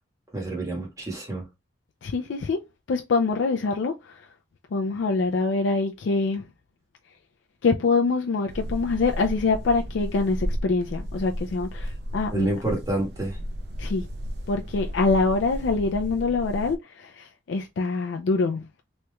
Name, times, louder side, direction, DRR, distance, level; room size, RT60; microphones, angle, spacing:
voice 1, 0.3-1.4 11.8-11.9 12.3-13.4, right 1 dB, 15° right, 1.4 m, -28 dB
voice 2, 2.0-2.6 2.9-4.2 4.7-6.4 7.6-12.5 13.8-14.1 14.5-18.6, left 4 dB, 75° left, 0.4 m, -25 dB
sound 1, 8.5-16.8, equal, 60° right, 0.5 m, -34 dB
3.2 x 2.9 x 2.2 m
head